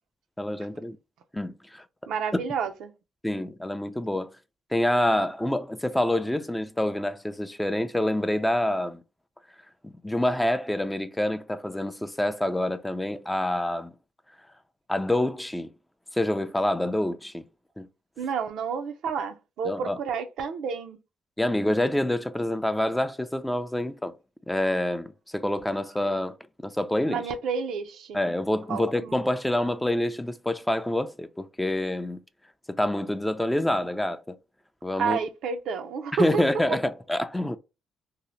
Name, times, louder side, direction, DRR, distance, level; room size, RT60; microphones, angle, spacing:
voice 1, 0.4-1.0 1.3-1.8 3.2-4.3 4.7-9.0 9.8-13.9 14.9-15.7 16.1-17.4 17.8-17.9 19.6-20.0 21.4-24.1 24.5-26.4 26.6-27.2 28.1-32.2 32.7-34.4 34.8-35.2 36.2-37.6, left 1 dB, 5° left, 0.3 m, -27 dB
voice 2, 2.1-2.9 18.2-21.0 27.1-28.2 28.7-29.2 35.0-36.4, right 6 dB, 80° right, 0.4 m, -30 dB
2.7 x 2.0 x 3.0 m
cardioid pair, 90°, 0 cm